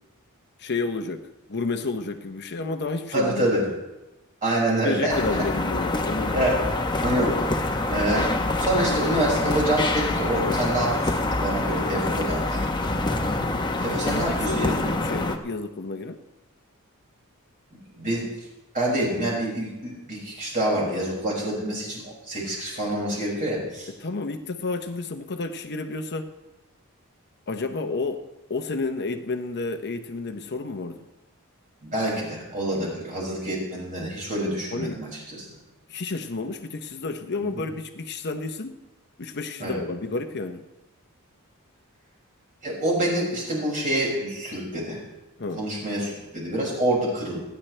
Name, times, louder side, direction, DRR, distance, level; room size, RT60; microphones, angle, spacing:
voice 1, 0.6-1.2 1.5-3.5 4.8-6.4 13.9-16.2 24.0-26.3 27.5-28.2 28.5-31.0 34.7-35.1 35.9-38.8 39.2-40.6 45.4-45.6, left 3 dB, 50° left, 6 dB, 0.8 m, -31 dB
voice 2, 3.1-3.7 4.4-5.2 6.3-6.6 7.0-7.3 7.6-8.3 8.6-12.6 13.8-14.8 17.9-18.3 18.7-23.9 31.8-35.4 37.4-37.6 39.6-39.8 42.6-45.0 45.6-47.4, right 1 dB, 35° right, -4 dB, 6.1 m, -26 dB
sound 1, 5.1-15.4, left 2 dB, 20° left, 1.0 m, -26 dB
28.5 x 10.5 x 3.3 m, 1.0 s
head